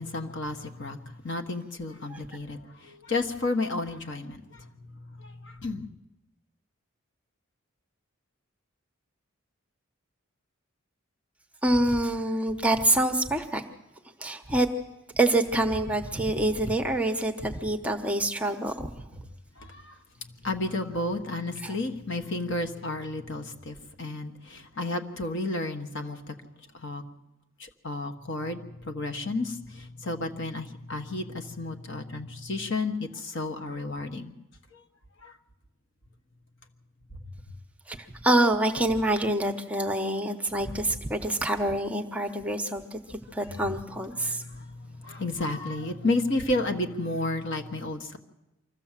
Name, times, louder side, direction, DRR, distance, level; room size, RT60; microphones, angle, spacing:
voice 1, 0.0-4.7 5.2-5.8 19.6-20.0 20.4-26.3 26.7-27.0 27.6-34.3 35.2-35.3 44.2-48.2, left 2 dB, 55° left, 6 dB, 1.3 m, -32 dB
voice 2, 11.6-13.6 14.2-14.7 15.1-18.9 21.6-21.7 37.9-38.0 38.2-44.4, right 1 dB, 5° right, 5 dB, 0.9 m, -26 dB
24.5 x 14.5 x 7.4 m, 0.96 s
head